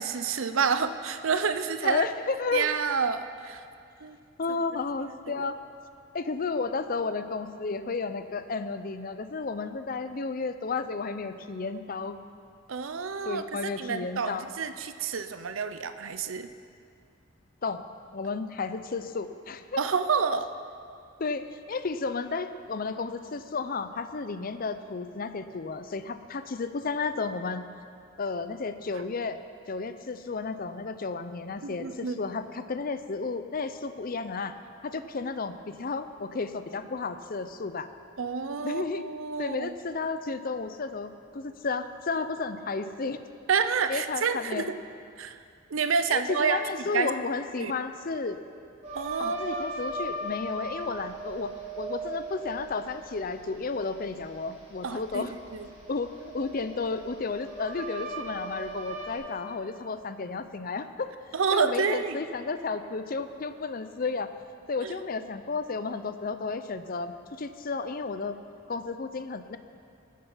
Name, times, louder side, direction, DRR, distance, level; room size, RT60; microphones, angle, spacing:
voice 1, 0.0-2.0 2.5-3.6 4.0-4.2 5.3-5.4 12.7-16.5 19.8-20.5 31.6-32.2 38.2-39.7 43.5-44.8 45.2-45.4 45.7-46.6 46.9-47.1 47.6-47.7 48.9-49.6 54.8-55.3 55.5-55.7 61.3-62.2 64.8-64.9, right 5 dB, 75° right, 10 dB, 0.6 m, -29 dB
voice 2, 1.8-2.7 4.4-5.6 6.1-12.2 13.3-14.5 17.6-17.8 18.1-19.8 21.2-27.7 28.2-29.4 29.7-34.6 34.8-37.9 38.6-39.0 39.4-43.2 43.9-44.7 46.1-48.4 49.2-55.3 55.9-61.1 61.5-64.3 64.7-67.1 67.4-68.4 68.7-69.6, left 4 dB, 45° left, 10 dB, 0.6 m, -32 dB
sound 1, 48.8-59.1, right 2 dB, 30° right, 3.5 m, -39 dB
19.5 x 7.5 x 5.6 m, 2.4 s
head